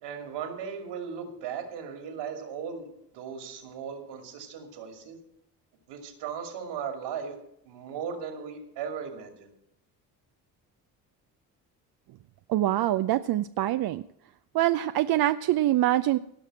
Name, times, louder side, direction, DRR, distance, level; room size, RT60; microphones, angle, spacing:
voice 1, 0.0-2.9 3.1-5.2 5.9-7.3 7.6-9.5, right 7 dB, 75° right, 4 dB, 2.6 m, -37 dB
voice 2, 12.5-14.0 14.5-16.2, right 14 dB, 55° right, 10 dB, 0.6 m, -24 dB
17.5 x 5.8 x 7.5 m, 0.76 s
hypercardioid pair, 55°, 43 cm